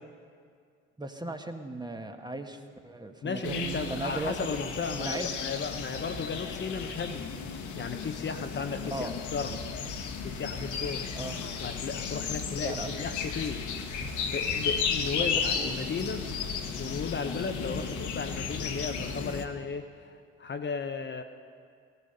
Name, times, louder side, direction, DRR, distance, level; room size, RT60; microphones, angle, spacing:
voice 1, 1.0-4.4 5.0-5.4 8.9-9.1 11.1-11.4 12.6-13.0 15.2-15.7 17.7-17.9, right 2 dB, 10° right, 5 dB, 1.4 m, -37 dB
voice 2, 3.2-7.3 7.7-9.6 10.2-11.1 11.6-16.3 16.8-21.2, left 5 dB, 30° left, 6 dB, 1.0 m, -35 dB
sound 1, 3.4-19.4, left 5 dB, 60° left, 1.6 m, -34 dB
sound 2, 3.4-6.8, right 13 dB, 75° right, 0.9 m, -44 dB
17.5 x 14.0 x 5.5 m, 2.2 s
hypercardioid pair, 55°, 34 cm